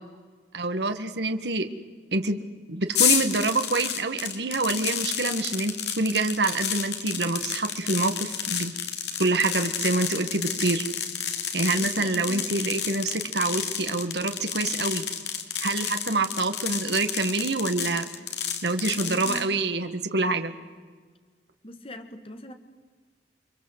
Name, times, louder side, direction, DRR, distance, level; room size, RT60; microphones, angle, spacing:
voice 1, 0.5-1.7 2.1-2.4 2.7-8.7 9.2-10.9 11.5-15.0 15.6-18.1 18.6-20.5, right 3 dB, 70° right, 7 dB, 1.8 m, -26 dB
sound 1, 2.9-19.4, left 8 dB, 70° left, 2.8 m, -30 dB
voice 2, 11.7-12.5 18.9-19.6 21.6-22.5, left 1 dB, 30° left, 8 dB, 1.8 m, -40 dB
30.0 x 23.5 x 8.0 m, 1.5 s
head